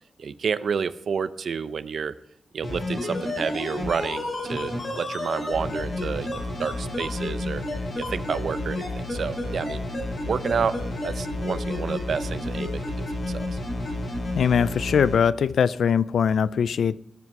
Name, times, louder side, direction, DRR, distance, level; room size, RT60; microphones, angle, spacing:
voice 1, 0.2-2.1 2.5-7.6 8.0-9.8 10.3-13.6, right 6 dB, 65° right, 14 dB, 0.6 m, -30 dB
sound 1, 2.6-15.2 15.5-15.6, left 1 dB, 50° left, 3.9 m, -30 dB
voice 2, 14.3-17.0, left 7 dB, 80° left, 18 dB, 0.4 m, -21 dB
19.0 x 7.9 x 4.8 m, 0.79 s
wide cardioid pair, 165°, 0 cm